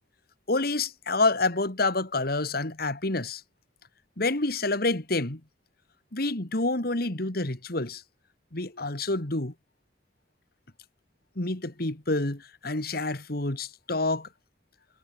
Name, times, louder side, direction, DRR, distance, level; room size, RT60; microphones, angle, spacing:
voice 1, 0.5-3.4 4.2-5.4 6.1-8.0 8.5-9.5 11.4-14.3, left 2 dB, 60° left, 2.5 m, -28 dB
head